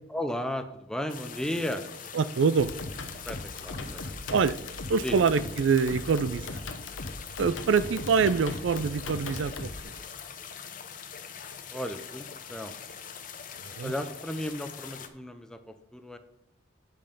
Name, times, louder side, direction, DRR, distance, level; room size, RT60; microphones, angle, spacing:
voice 1, 0.1-1.8 3.2-4.1 5.0-5.2 11.7-12.8 13.8-16.2, left 1 dB, 5° left, 8 dB, 0.5 m, -34 dB
sound 1, 1.1-15.1, left 7 dB, 45° left, 0.7 m, -43 dB
voice 2, 2.1-2.7 4.3-4.6 4.9-6.6 7.4-9.9 13.6-13.9, right 5 dB, 75° right, 15 dB, 0.4 m, -25 dB
sound 2, 2.6-9.8, left 2 dB, 80° left, 1.0 m, -39 dB
8.8 x 5.4 x 5.2 m, 0.83 s
head